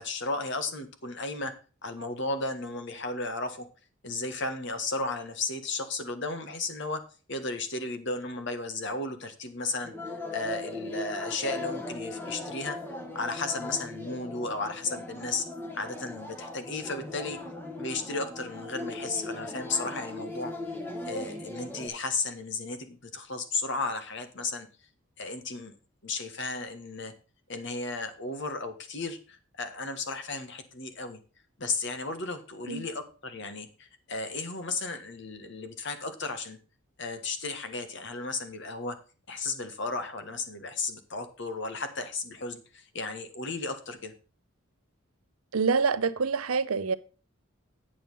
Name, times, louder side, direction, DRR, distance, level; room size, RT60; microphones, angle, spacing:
voice 1, 0.0-1.5 1.8-3.7 4.0-7.0 7.3-9.9 10.3-12.8 13.1-15.5 15.7-17.4 17.8-20.5 21.0-24.7 25.2-25.7 26.0-27.1 27.5-31.2 31.6-36.6 37.0-39.0 39.3-44.1, left 3 dB, 55° left, 1.5 m, -34 dB
sound 1, 9.8-21.9, left 2 dB, 10° left, 1.5 m, -38 dB
voice 2, 45.5-46.9, right 5 dB, 85° right, 0.7 m, -26 dB
8.8 x 7.0 x 5.5 m
head